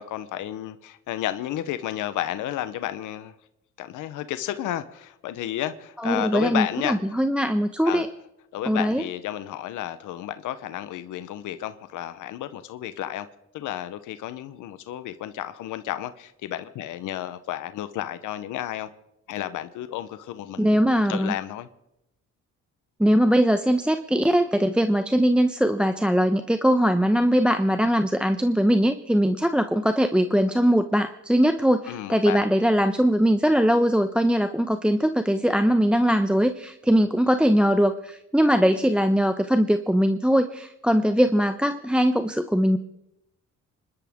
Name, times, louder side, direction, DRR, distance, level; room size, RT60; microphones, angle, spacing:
voice 1, 0.0-3.3 3.8-7.0 7.8-8.1 8.5-13.3 13.5-18.9 19.3-21.7 31.9-32.4, left 12 dB, 85° left, 0.9 m, -32 dB
voice 2, 6.0-8.1 8.7-9.0 20.6-21.3 23.0-42.8, equal, 5° right, 0.8 m, -21 dB
26.0 x 12.5 x 3.7 m
cardioid pair, 90°, 30 cm